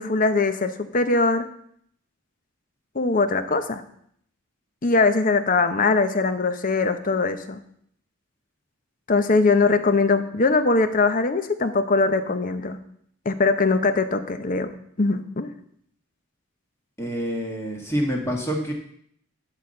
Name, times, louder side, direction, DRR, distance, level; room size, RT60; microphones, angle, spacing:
voice 1, 0.0-1.5 2.9-3.8 4.8-7.6 9.1-12.8 13.3-14.7 15.0-15.6, left 3 dB, 40° left, 10 dB, 0.7 m, -21 dB
voice 2, 17.0-18.7, equal, 10° left, 0 dB, 1.7 m, -27 dB
10.5 x 4.1 x 7.6 m, 0.67 s
head